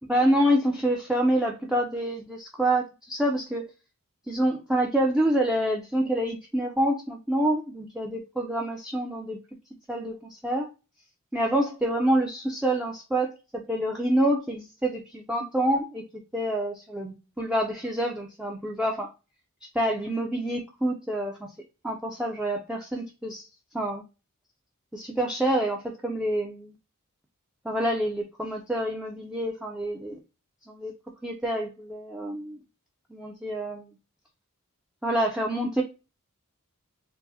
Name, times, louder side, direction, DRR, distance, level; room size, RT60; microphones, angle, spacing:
voice 1, 0.1-3.7 4.3-9.4 9.9-10.7 11.3-16.1 16.3-19.1 19.7-21.5 21.8-23.5 23.7-24.0 24.9-26.7 27.6-30.2 30.7-30.9 31.2-32.6 33.1-33.9 35.0-35.8, right 1 dB, 5° right, -1 dB, 0.4 m, -27 dB
4.6 x 2.1 x 2.6 m, 0.29 s
head